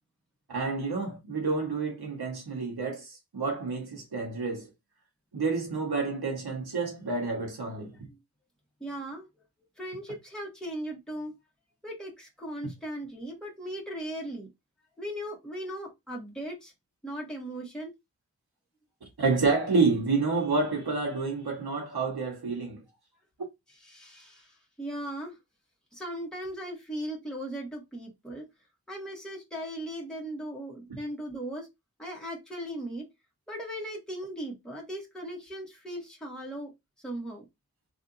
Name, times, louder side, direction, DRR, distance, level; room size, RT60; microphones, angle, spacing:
voice 1, 0.5-4.7 5.3-7.9 19.2-22.8, right 4 dB, 80° right, 1.6 m, -29 dB
voice 2, 8.8-9.3 9.8-11.3 11.8-14.5 15.0-16.7 17.0-17.9 23.8-25.4 25.9-28.5 28.9-31.7 32.0-33.1 33.5-36.7 37.0-37.4, right 1 dB, ahead, 1.8 m, -38 dB
3.5 x 3.5 x 2.7 m
wide cardioid pair, 90°, 37 cm